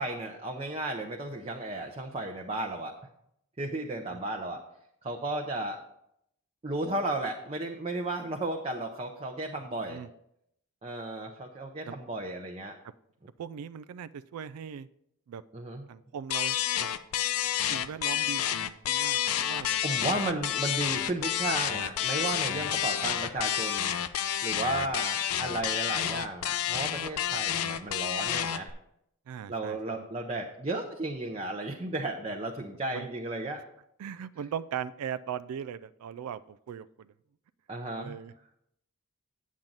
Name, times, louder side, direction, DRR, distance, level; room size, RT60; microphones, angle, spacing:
voice 1, 0.0-2.9 3.6-4.6 5.0-5.8 6.6-10.0 10.8-12.8 15.5-15.9 19.8-23.9 24.4-28.7 29.5-33.6 37.7-38.2, right 2 dB, 25° right, 1 dB, 0.6 m, -34 dB
voice 2, 13.4-14.9 15.3-15.4 15.9-16.9 17.7-20.4 22.6-23.2 29.3-30.1 32.9-33.1 34.0-37.1 37.9-38.3, right 8 dB, 90° right, 15 dB, 0.3 m, -40 dB
sound 1, 16.3-28.7, left 10 dB, 90° left, 0.5 m, -29 dB
8.8 x 7.4 x 3.9 m, 0.77 s
head